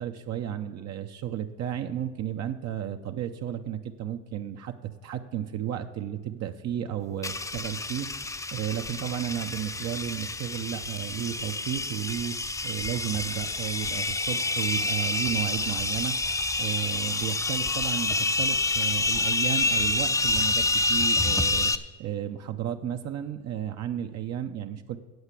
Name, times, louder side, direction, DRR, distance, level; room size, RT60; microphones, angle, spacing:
voice 1, 0.0-8.1 8.5-12.4 12.6-16.2 16.6-21.7 22.0-25.0, right 10 dB, 55° right, 6 dB, 0.7 m, -33 dB
sound 1, 7.2-21.8, left 2 dB, 10° left, 0.5 m, -28 dB
8.0 x 7.9 x 8.2 m, 1.2 s
supercardioid pair, 75°, 33 cm